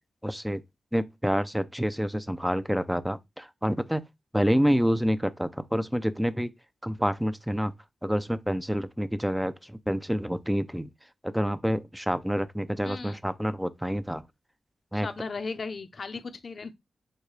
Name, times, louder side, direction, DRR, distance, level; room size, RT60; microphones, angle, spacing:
voice 1, 0.2-0.6 0.9-4.0 4.3-6.5 6.8-7.7 8.0-10.9 11.2-14.3 14.9-15.1, equal, 5° right, 0.4 m, -28 dB
voice 2, 12.8-13.2 14.9-16.7, left 4 dB, 50° left, 0.6 m, -36 dB
6.5 x 2.2 x 3.2 m
wide cardioid pair, 120°, 0 cm